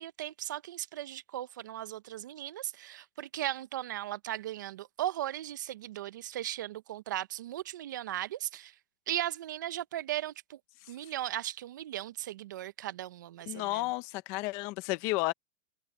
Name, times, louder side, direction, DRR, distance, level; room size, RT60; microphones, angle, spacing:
voice 1, 0.0-8.7 9.1-10.6 10.9-13.9, right 13 dB, 75° right, 0.8 m, -37 dB
voice 2, 13.5-15.3, left 21 dB, 30° left, 0.8 m, -32 dB
open air
supercardioid pair, 180°, 10 cm